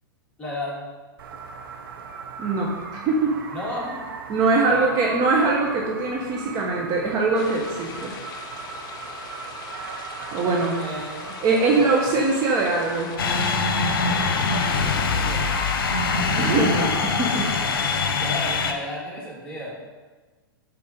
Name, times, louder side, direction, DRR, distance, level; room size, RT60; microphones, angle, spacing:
voice 1, 0.4-0.8 3.5-4.1 4.6-4.9 10.6-11.3 11.7-12.1 15.0-15.5 17.2-17.3 17.9-19.7, left 1 dB, 10° left, -6 dB, 2.2 m, -34 dB
sound 1, 1.2-15.3, right 5 dB, 75° right, 0.8 m, -38 dB
voice 2, 2.4-3.4 4.3-8.1 10.3-10.8 11.4-13.1 16.4-17.5, right 3 dB, 35° right, -2 dB, 1.0 m, -22 dB
sound 2, 7.3-13.2, left 6 dB, 30° left, 0.6 m, -40 dB
sound 3, 13.2-18.7, left 4 dB, 70° left, 0.8 m, -23 dB
7.5 x 4.1 x 4.3 m, 1.3 s
hypercardioid pair, 115°, 12 cm